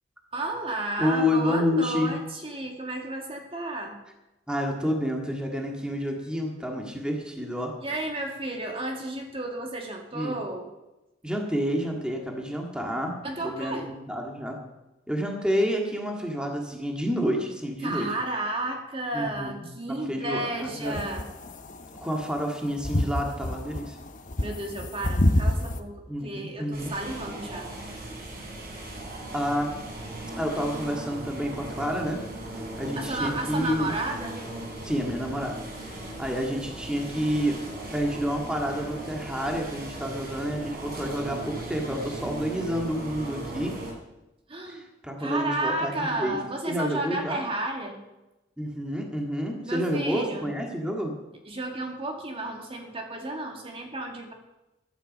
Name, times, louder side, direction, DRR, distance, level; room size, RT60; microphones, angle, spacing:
voice 1, 0.3-4.0 7.8-10.7 13.2-13.9 17.8-21.3 24.4-27.7 33.0-34.4 44.5-44.8 45.2-48.0 49.6-50.5 51.5-54.3, right 2 dB, 30° right, 2 dB, 2.1 m, -32 dB
voice 2, 1.0-2.1 4.5-7.7 10.1-10.4 11.2-13.1 13.4-14.6 15.1-18.1 19.1-21.0 22.0-24.0 26.1-26.9 27.3-27.4 29.3-29.7 30.4-32.2 32.8-34.0 34.8-35.6 35.8-35.9 36.2-37.6 37.9-43.8 44.7-46.4 46.7-47.4 48.6-51.2, equal, 5° right, 1 dB, 1.9 m, -29 dB
sound 1, 20.8-25.8, left 1 dB, 45° left, 1.0 m, -26 dB
sound 2, 26.7-43.9, right 1 dB, 55° right, 4.0 m, -38 dB
15.0 x 12.5 x 5.4 m, 0.98 s
head